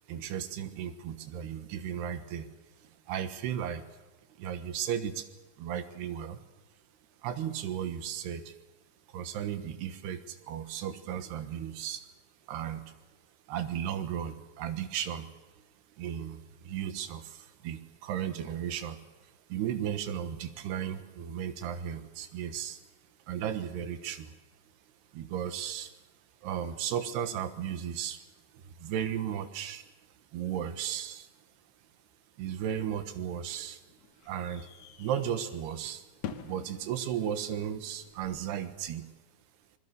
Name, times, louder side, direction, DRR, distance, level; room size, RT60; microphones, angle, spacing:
voice 1, 0.1-2.5 2.8-3.9 4.4-5.3 5.6-6.4 7.2-8.5 9.1-12.0 12.5-12.9 13.5-15.3 16.0-22.8 23.3-24.3 25.1-25.9 26.4-28.2 28.5-29.9 30.3-31.3 32.4-33.8 34.2-34.7 35.0-36.0 36.4-39.1, right 9 dB, 75° right, 10 dB, 3.3 m, -35 dB
sound 1, 33.6-38.9, left 8 dB, 90° left, 1.4 m, -48 dB
25.0 x 21.5 x 6.8 m, 1.1 s
omnidirectional pair, 4.8 m